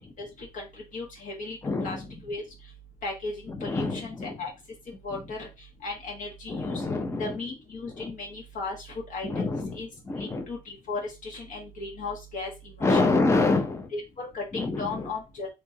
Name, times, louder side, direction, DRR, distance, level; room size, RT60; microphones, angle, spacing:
voice 1, 0.2-0.7 0.9-2.0 2.2-2.4 3.0-4.5 5.0-5.5 5.8-6.8 7.2-9.9 10.2-13.1 13.9-15.5, left 3 dB, 50° left, -1 dB, 1.6 m, -36 dB
voice 2, 1.6-2.1 3.6-4.4 6.5-7.3 8.0-8.1 9.2-9.8 10.1-10.5 12.8-13.9 14.5-15.1, left 3 dB, 15° left, 7 dB, 0.6 m, -26 dB
3.3 x 2.9 x 2.7 m, 0.25 s
cardioid pair, 110°, 17 cm